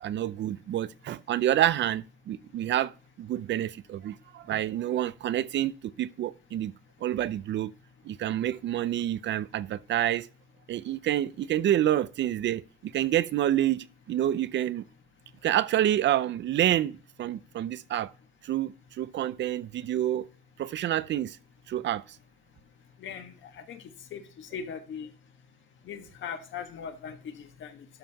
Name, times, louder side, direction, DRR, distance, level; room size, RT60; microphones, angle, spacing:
voice 1, 0.0-2.9 3.2-5.7 6.0-6.7 7.0-7.7 8.1-10.3 10.7-14.8 15.4-18.1 18.4-20.3 20.6-21.4 21.7-22.0, right 12 dB, 65° right, 0.6 m, -28 dB
voice 2, 23.0-23.8 24.1-25.1 25.8-27.8, left 7 dB, 75° left, 1.5 m, -40 dB
12.5 x 5.6 x 2.9 m
cardioid pair, 90°, 20 cm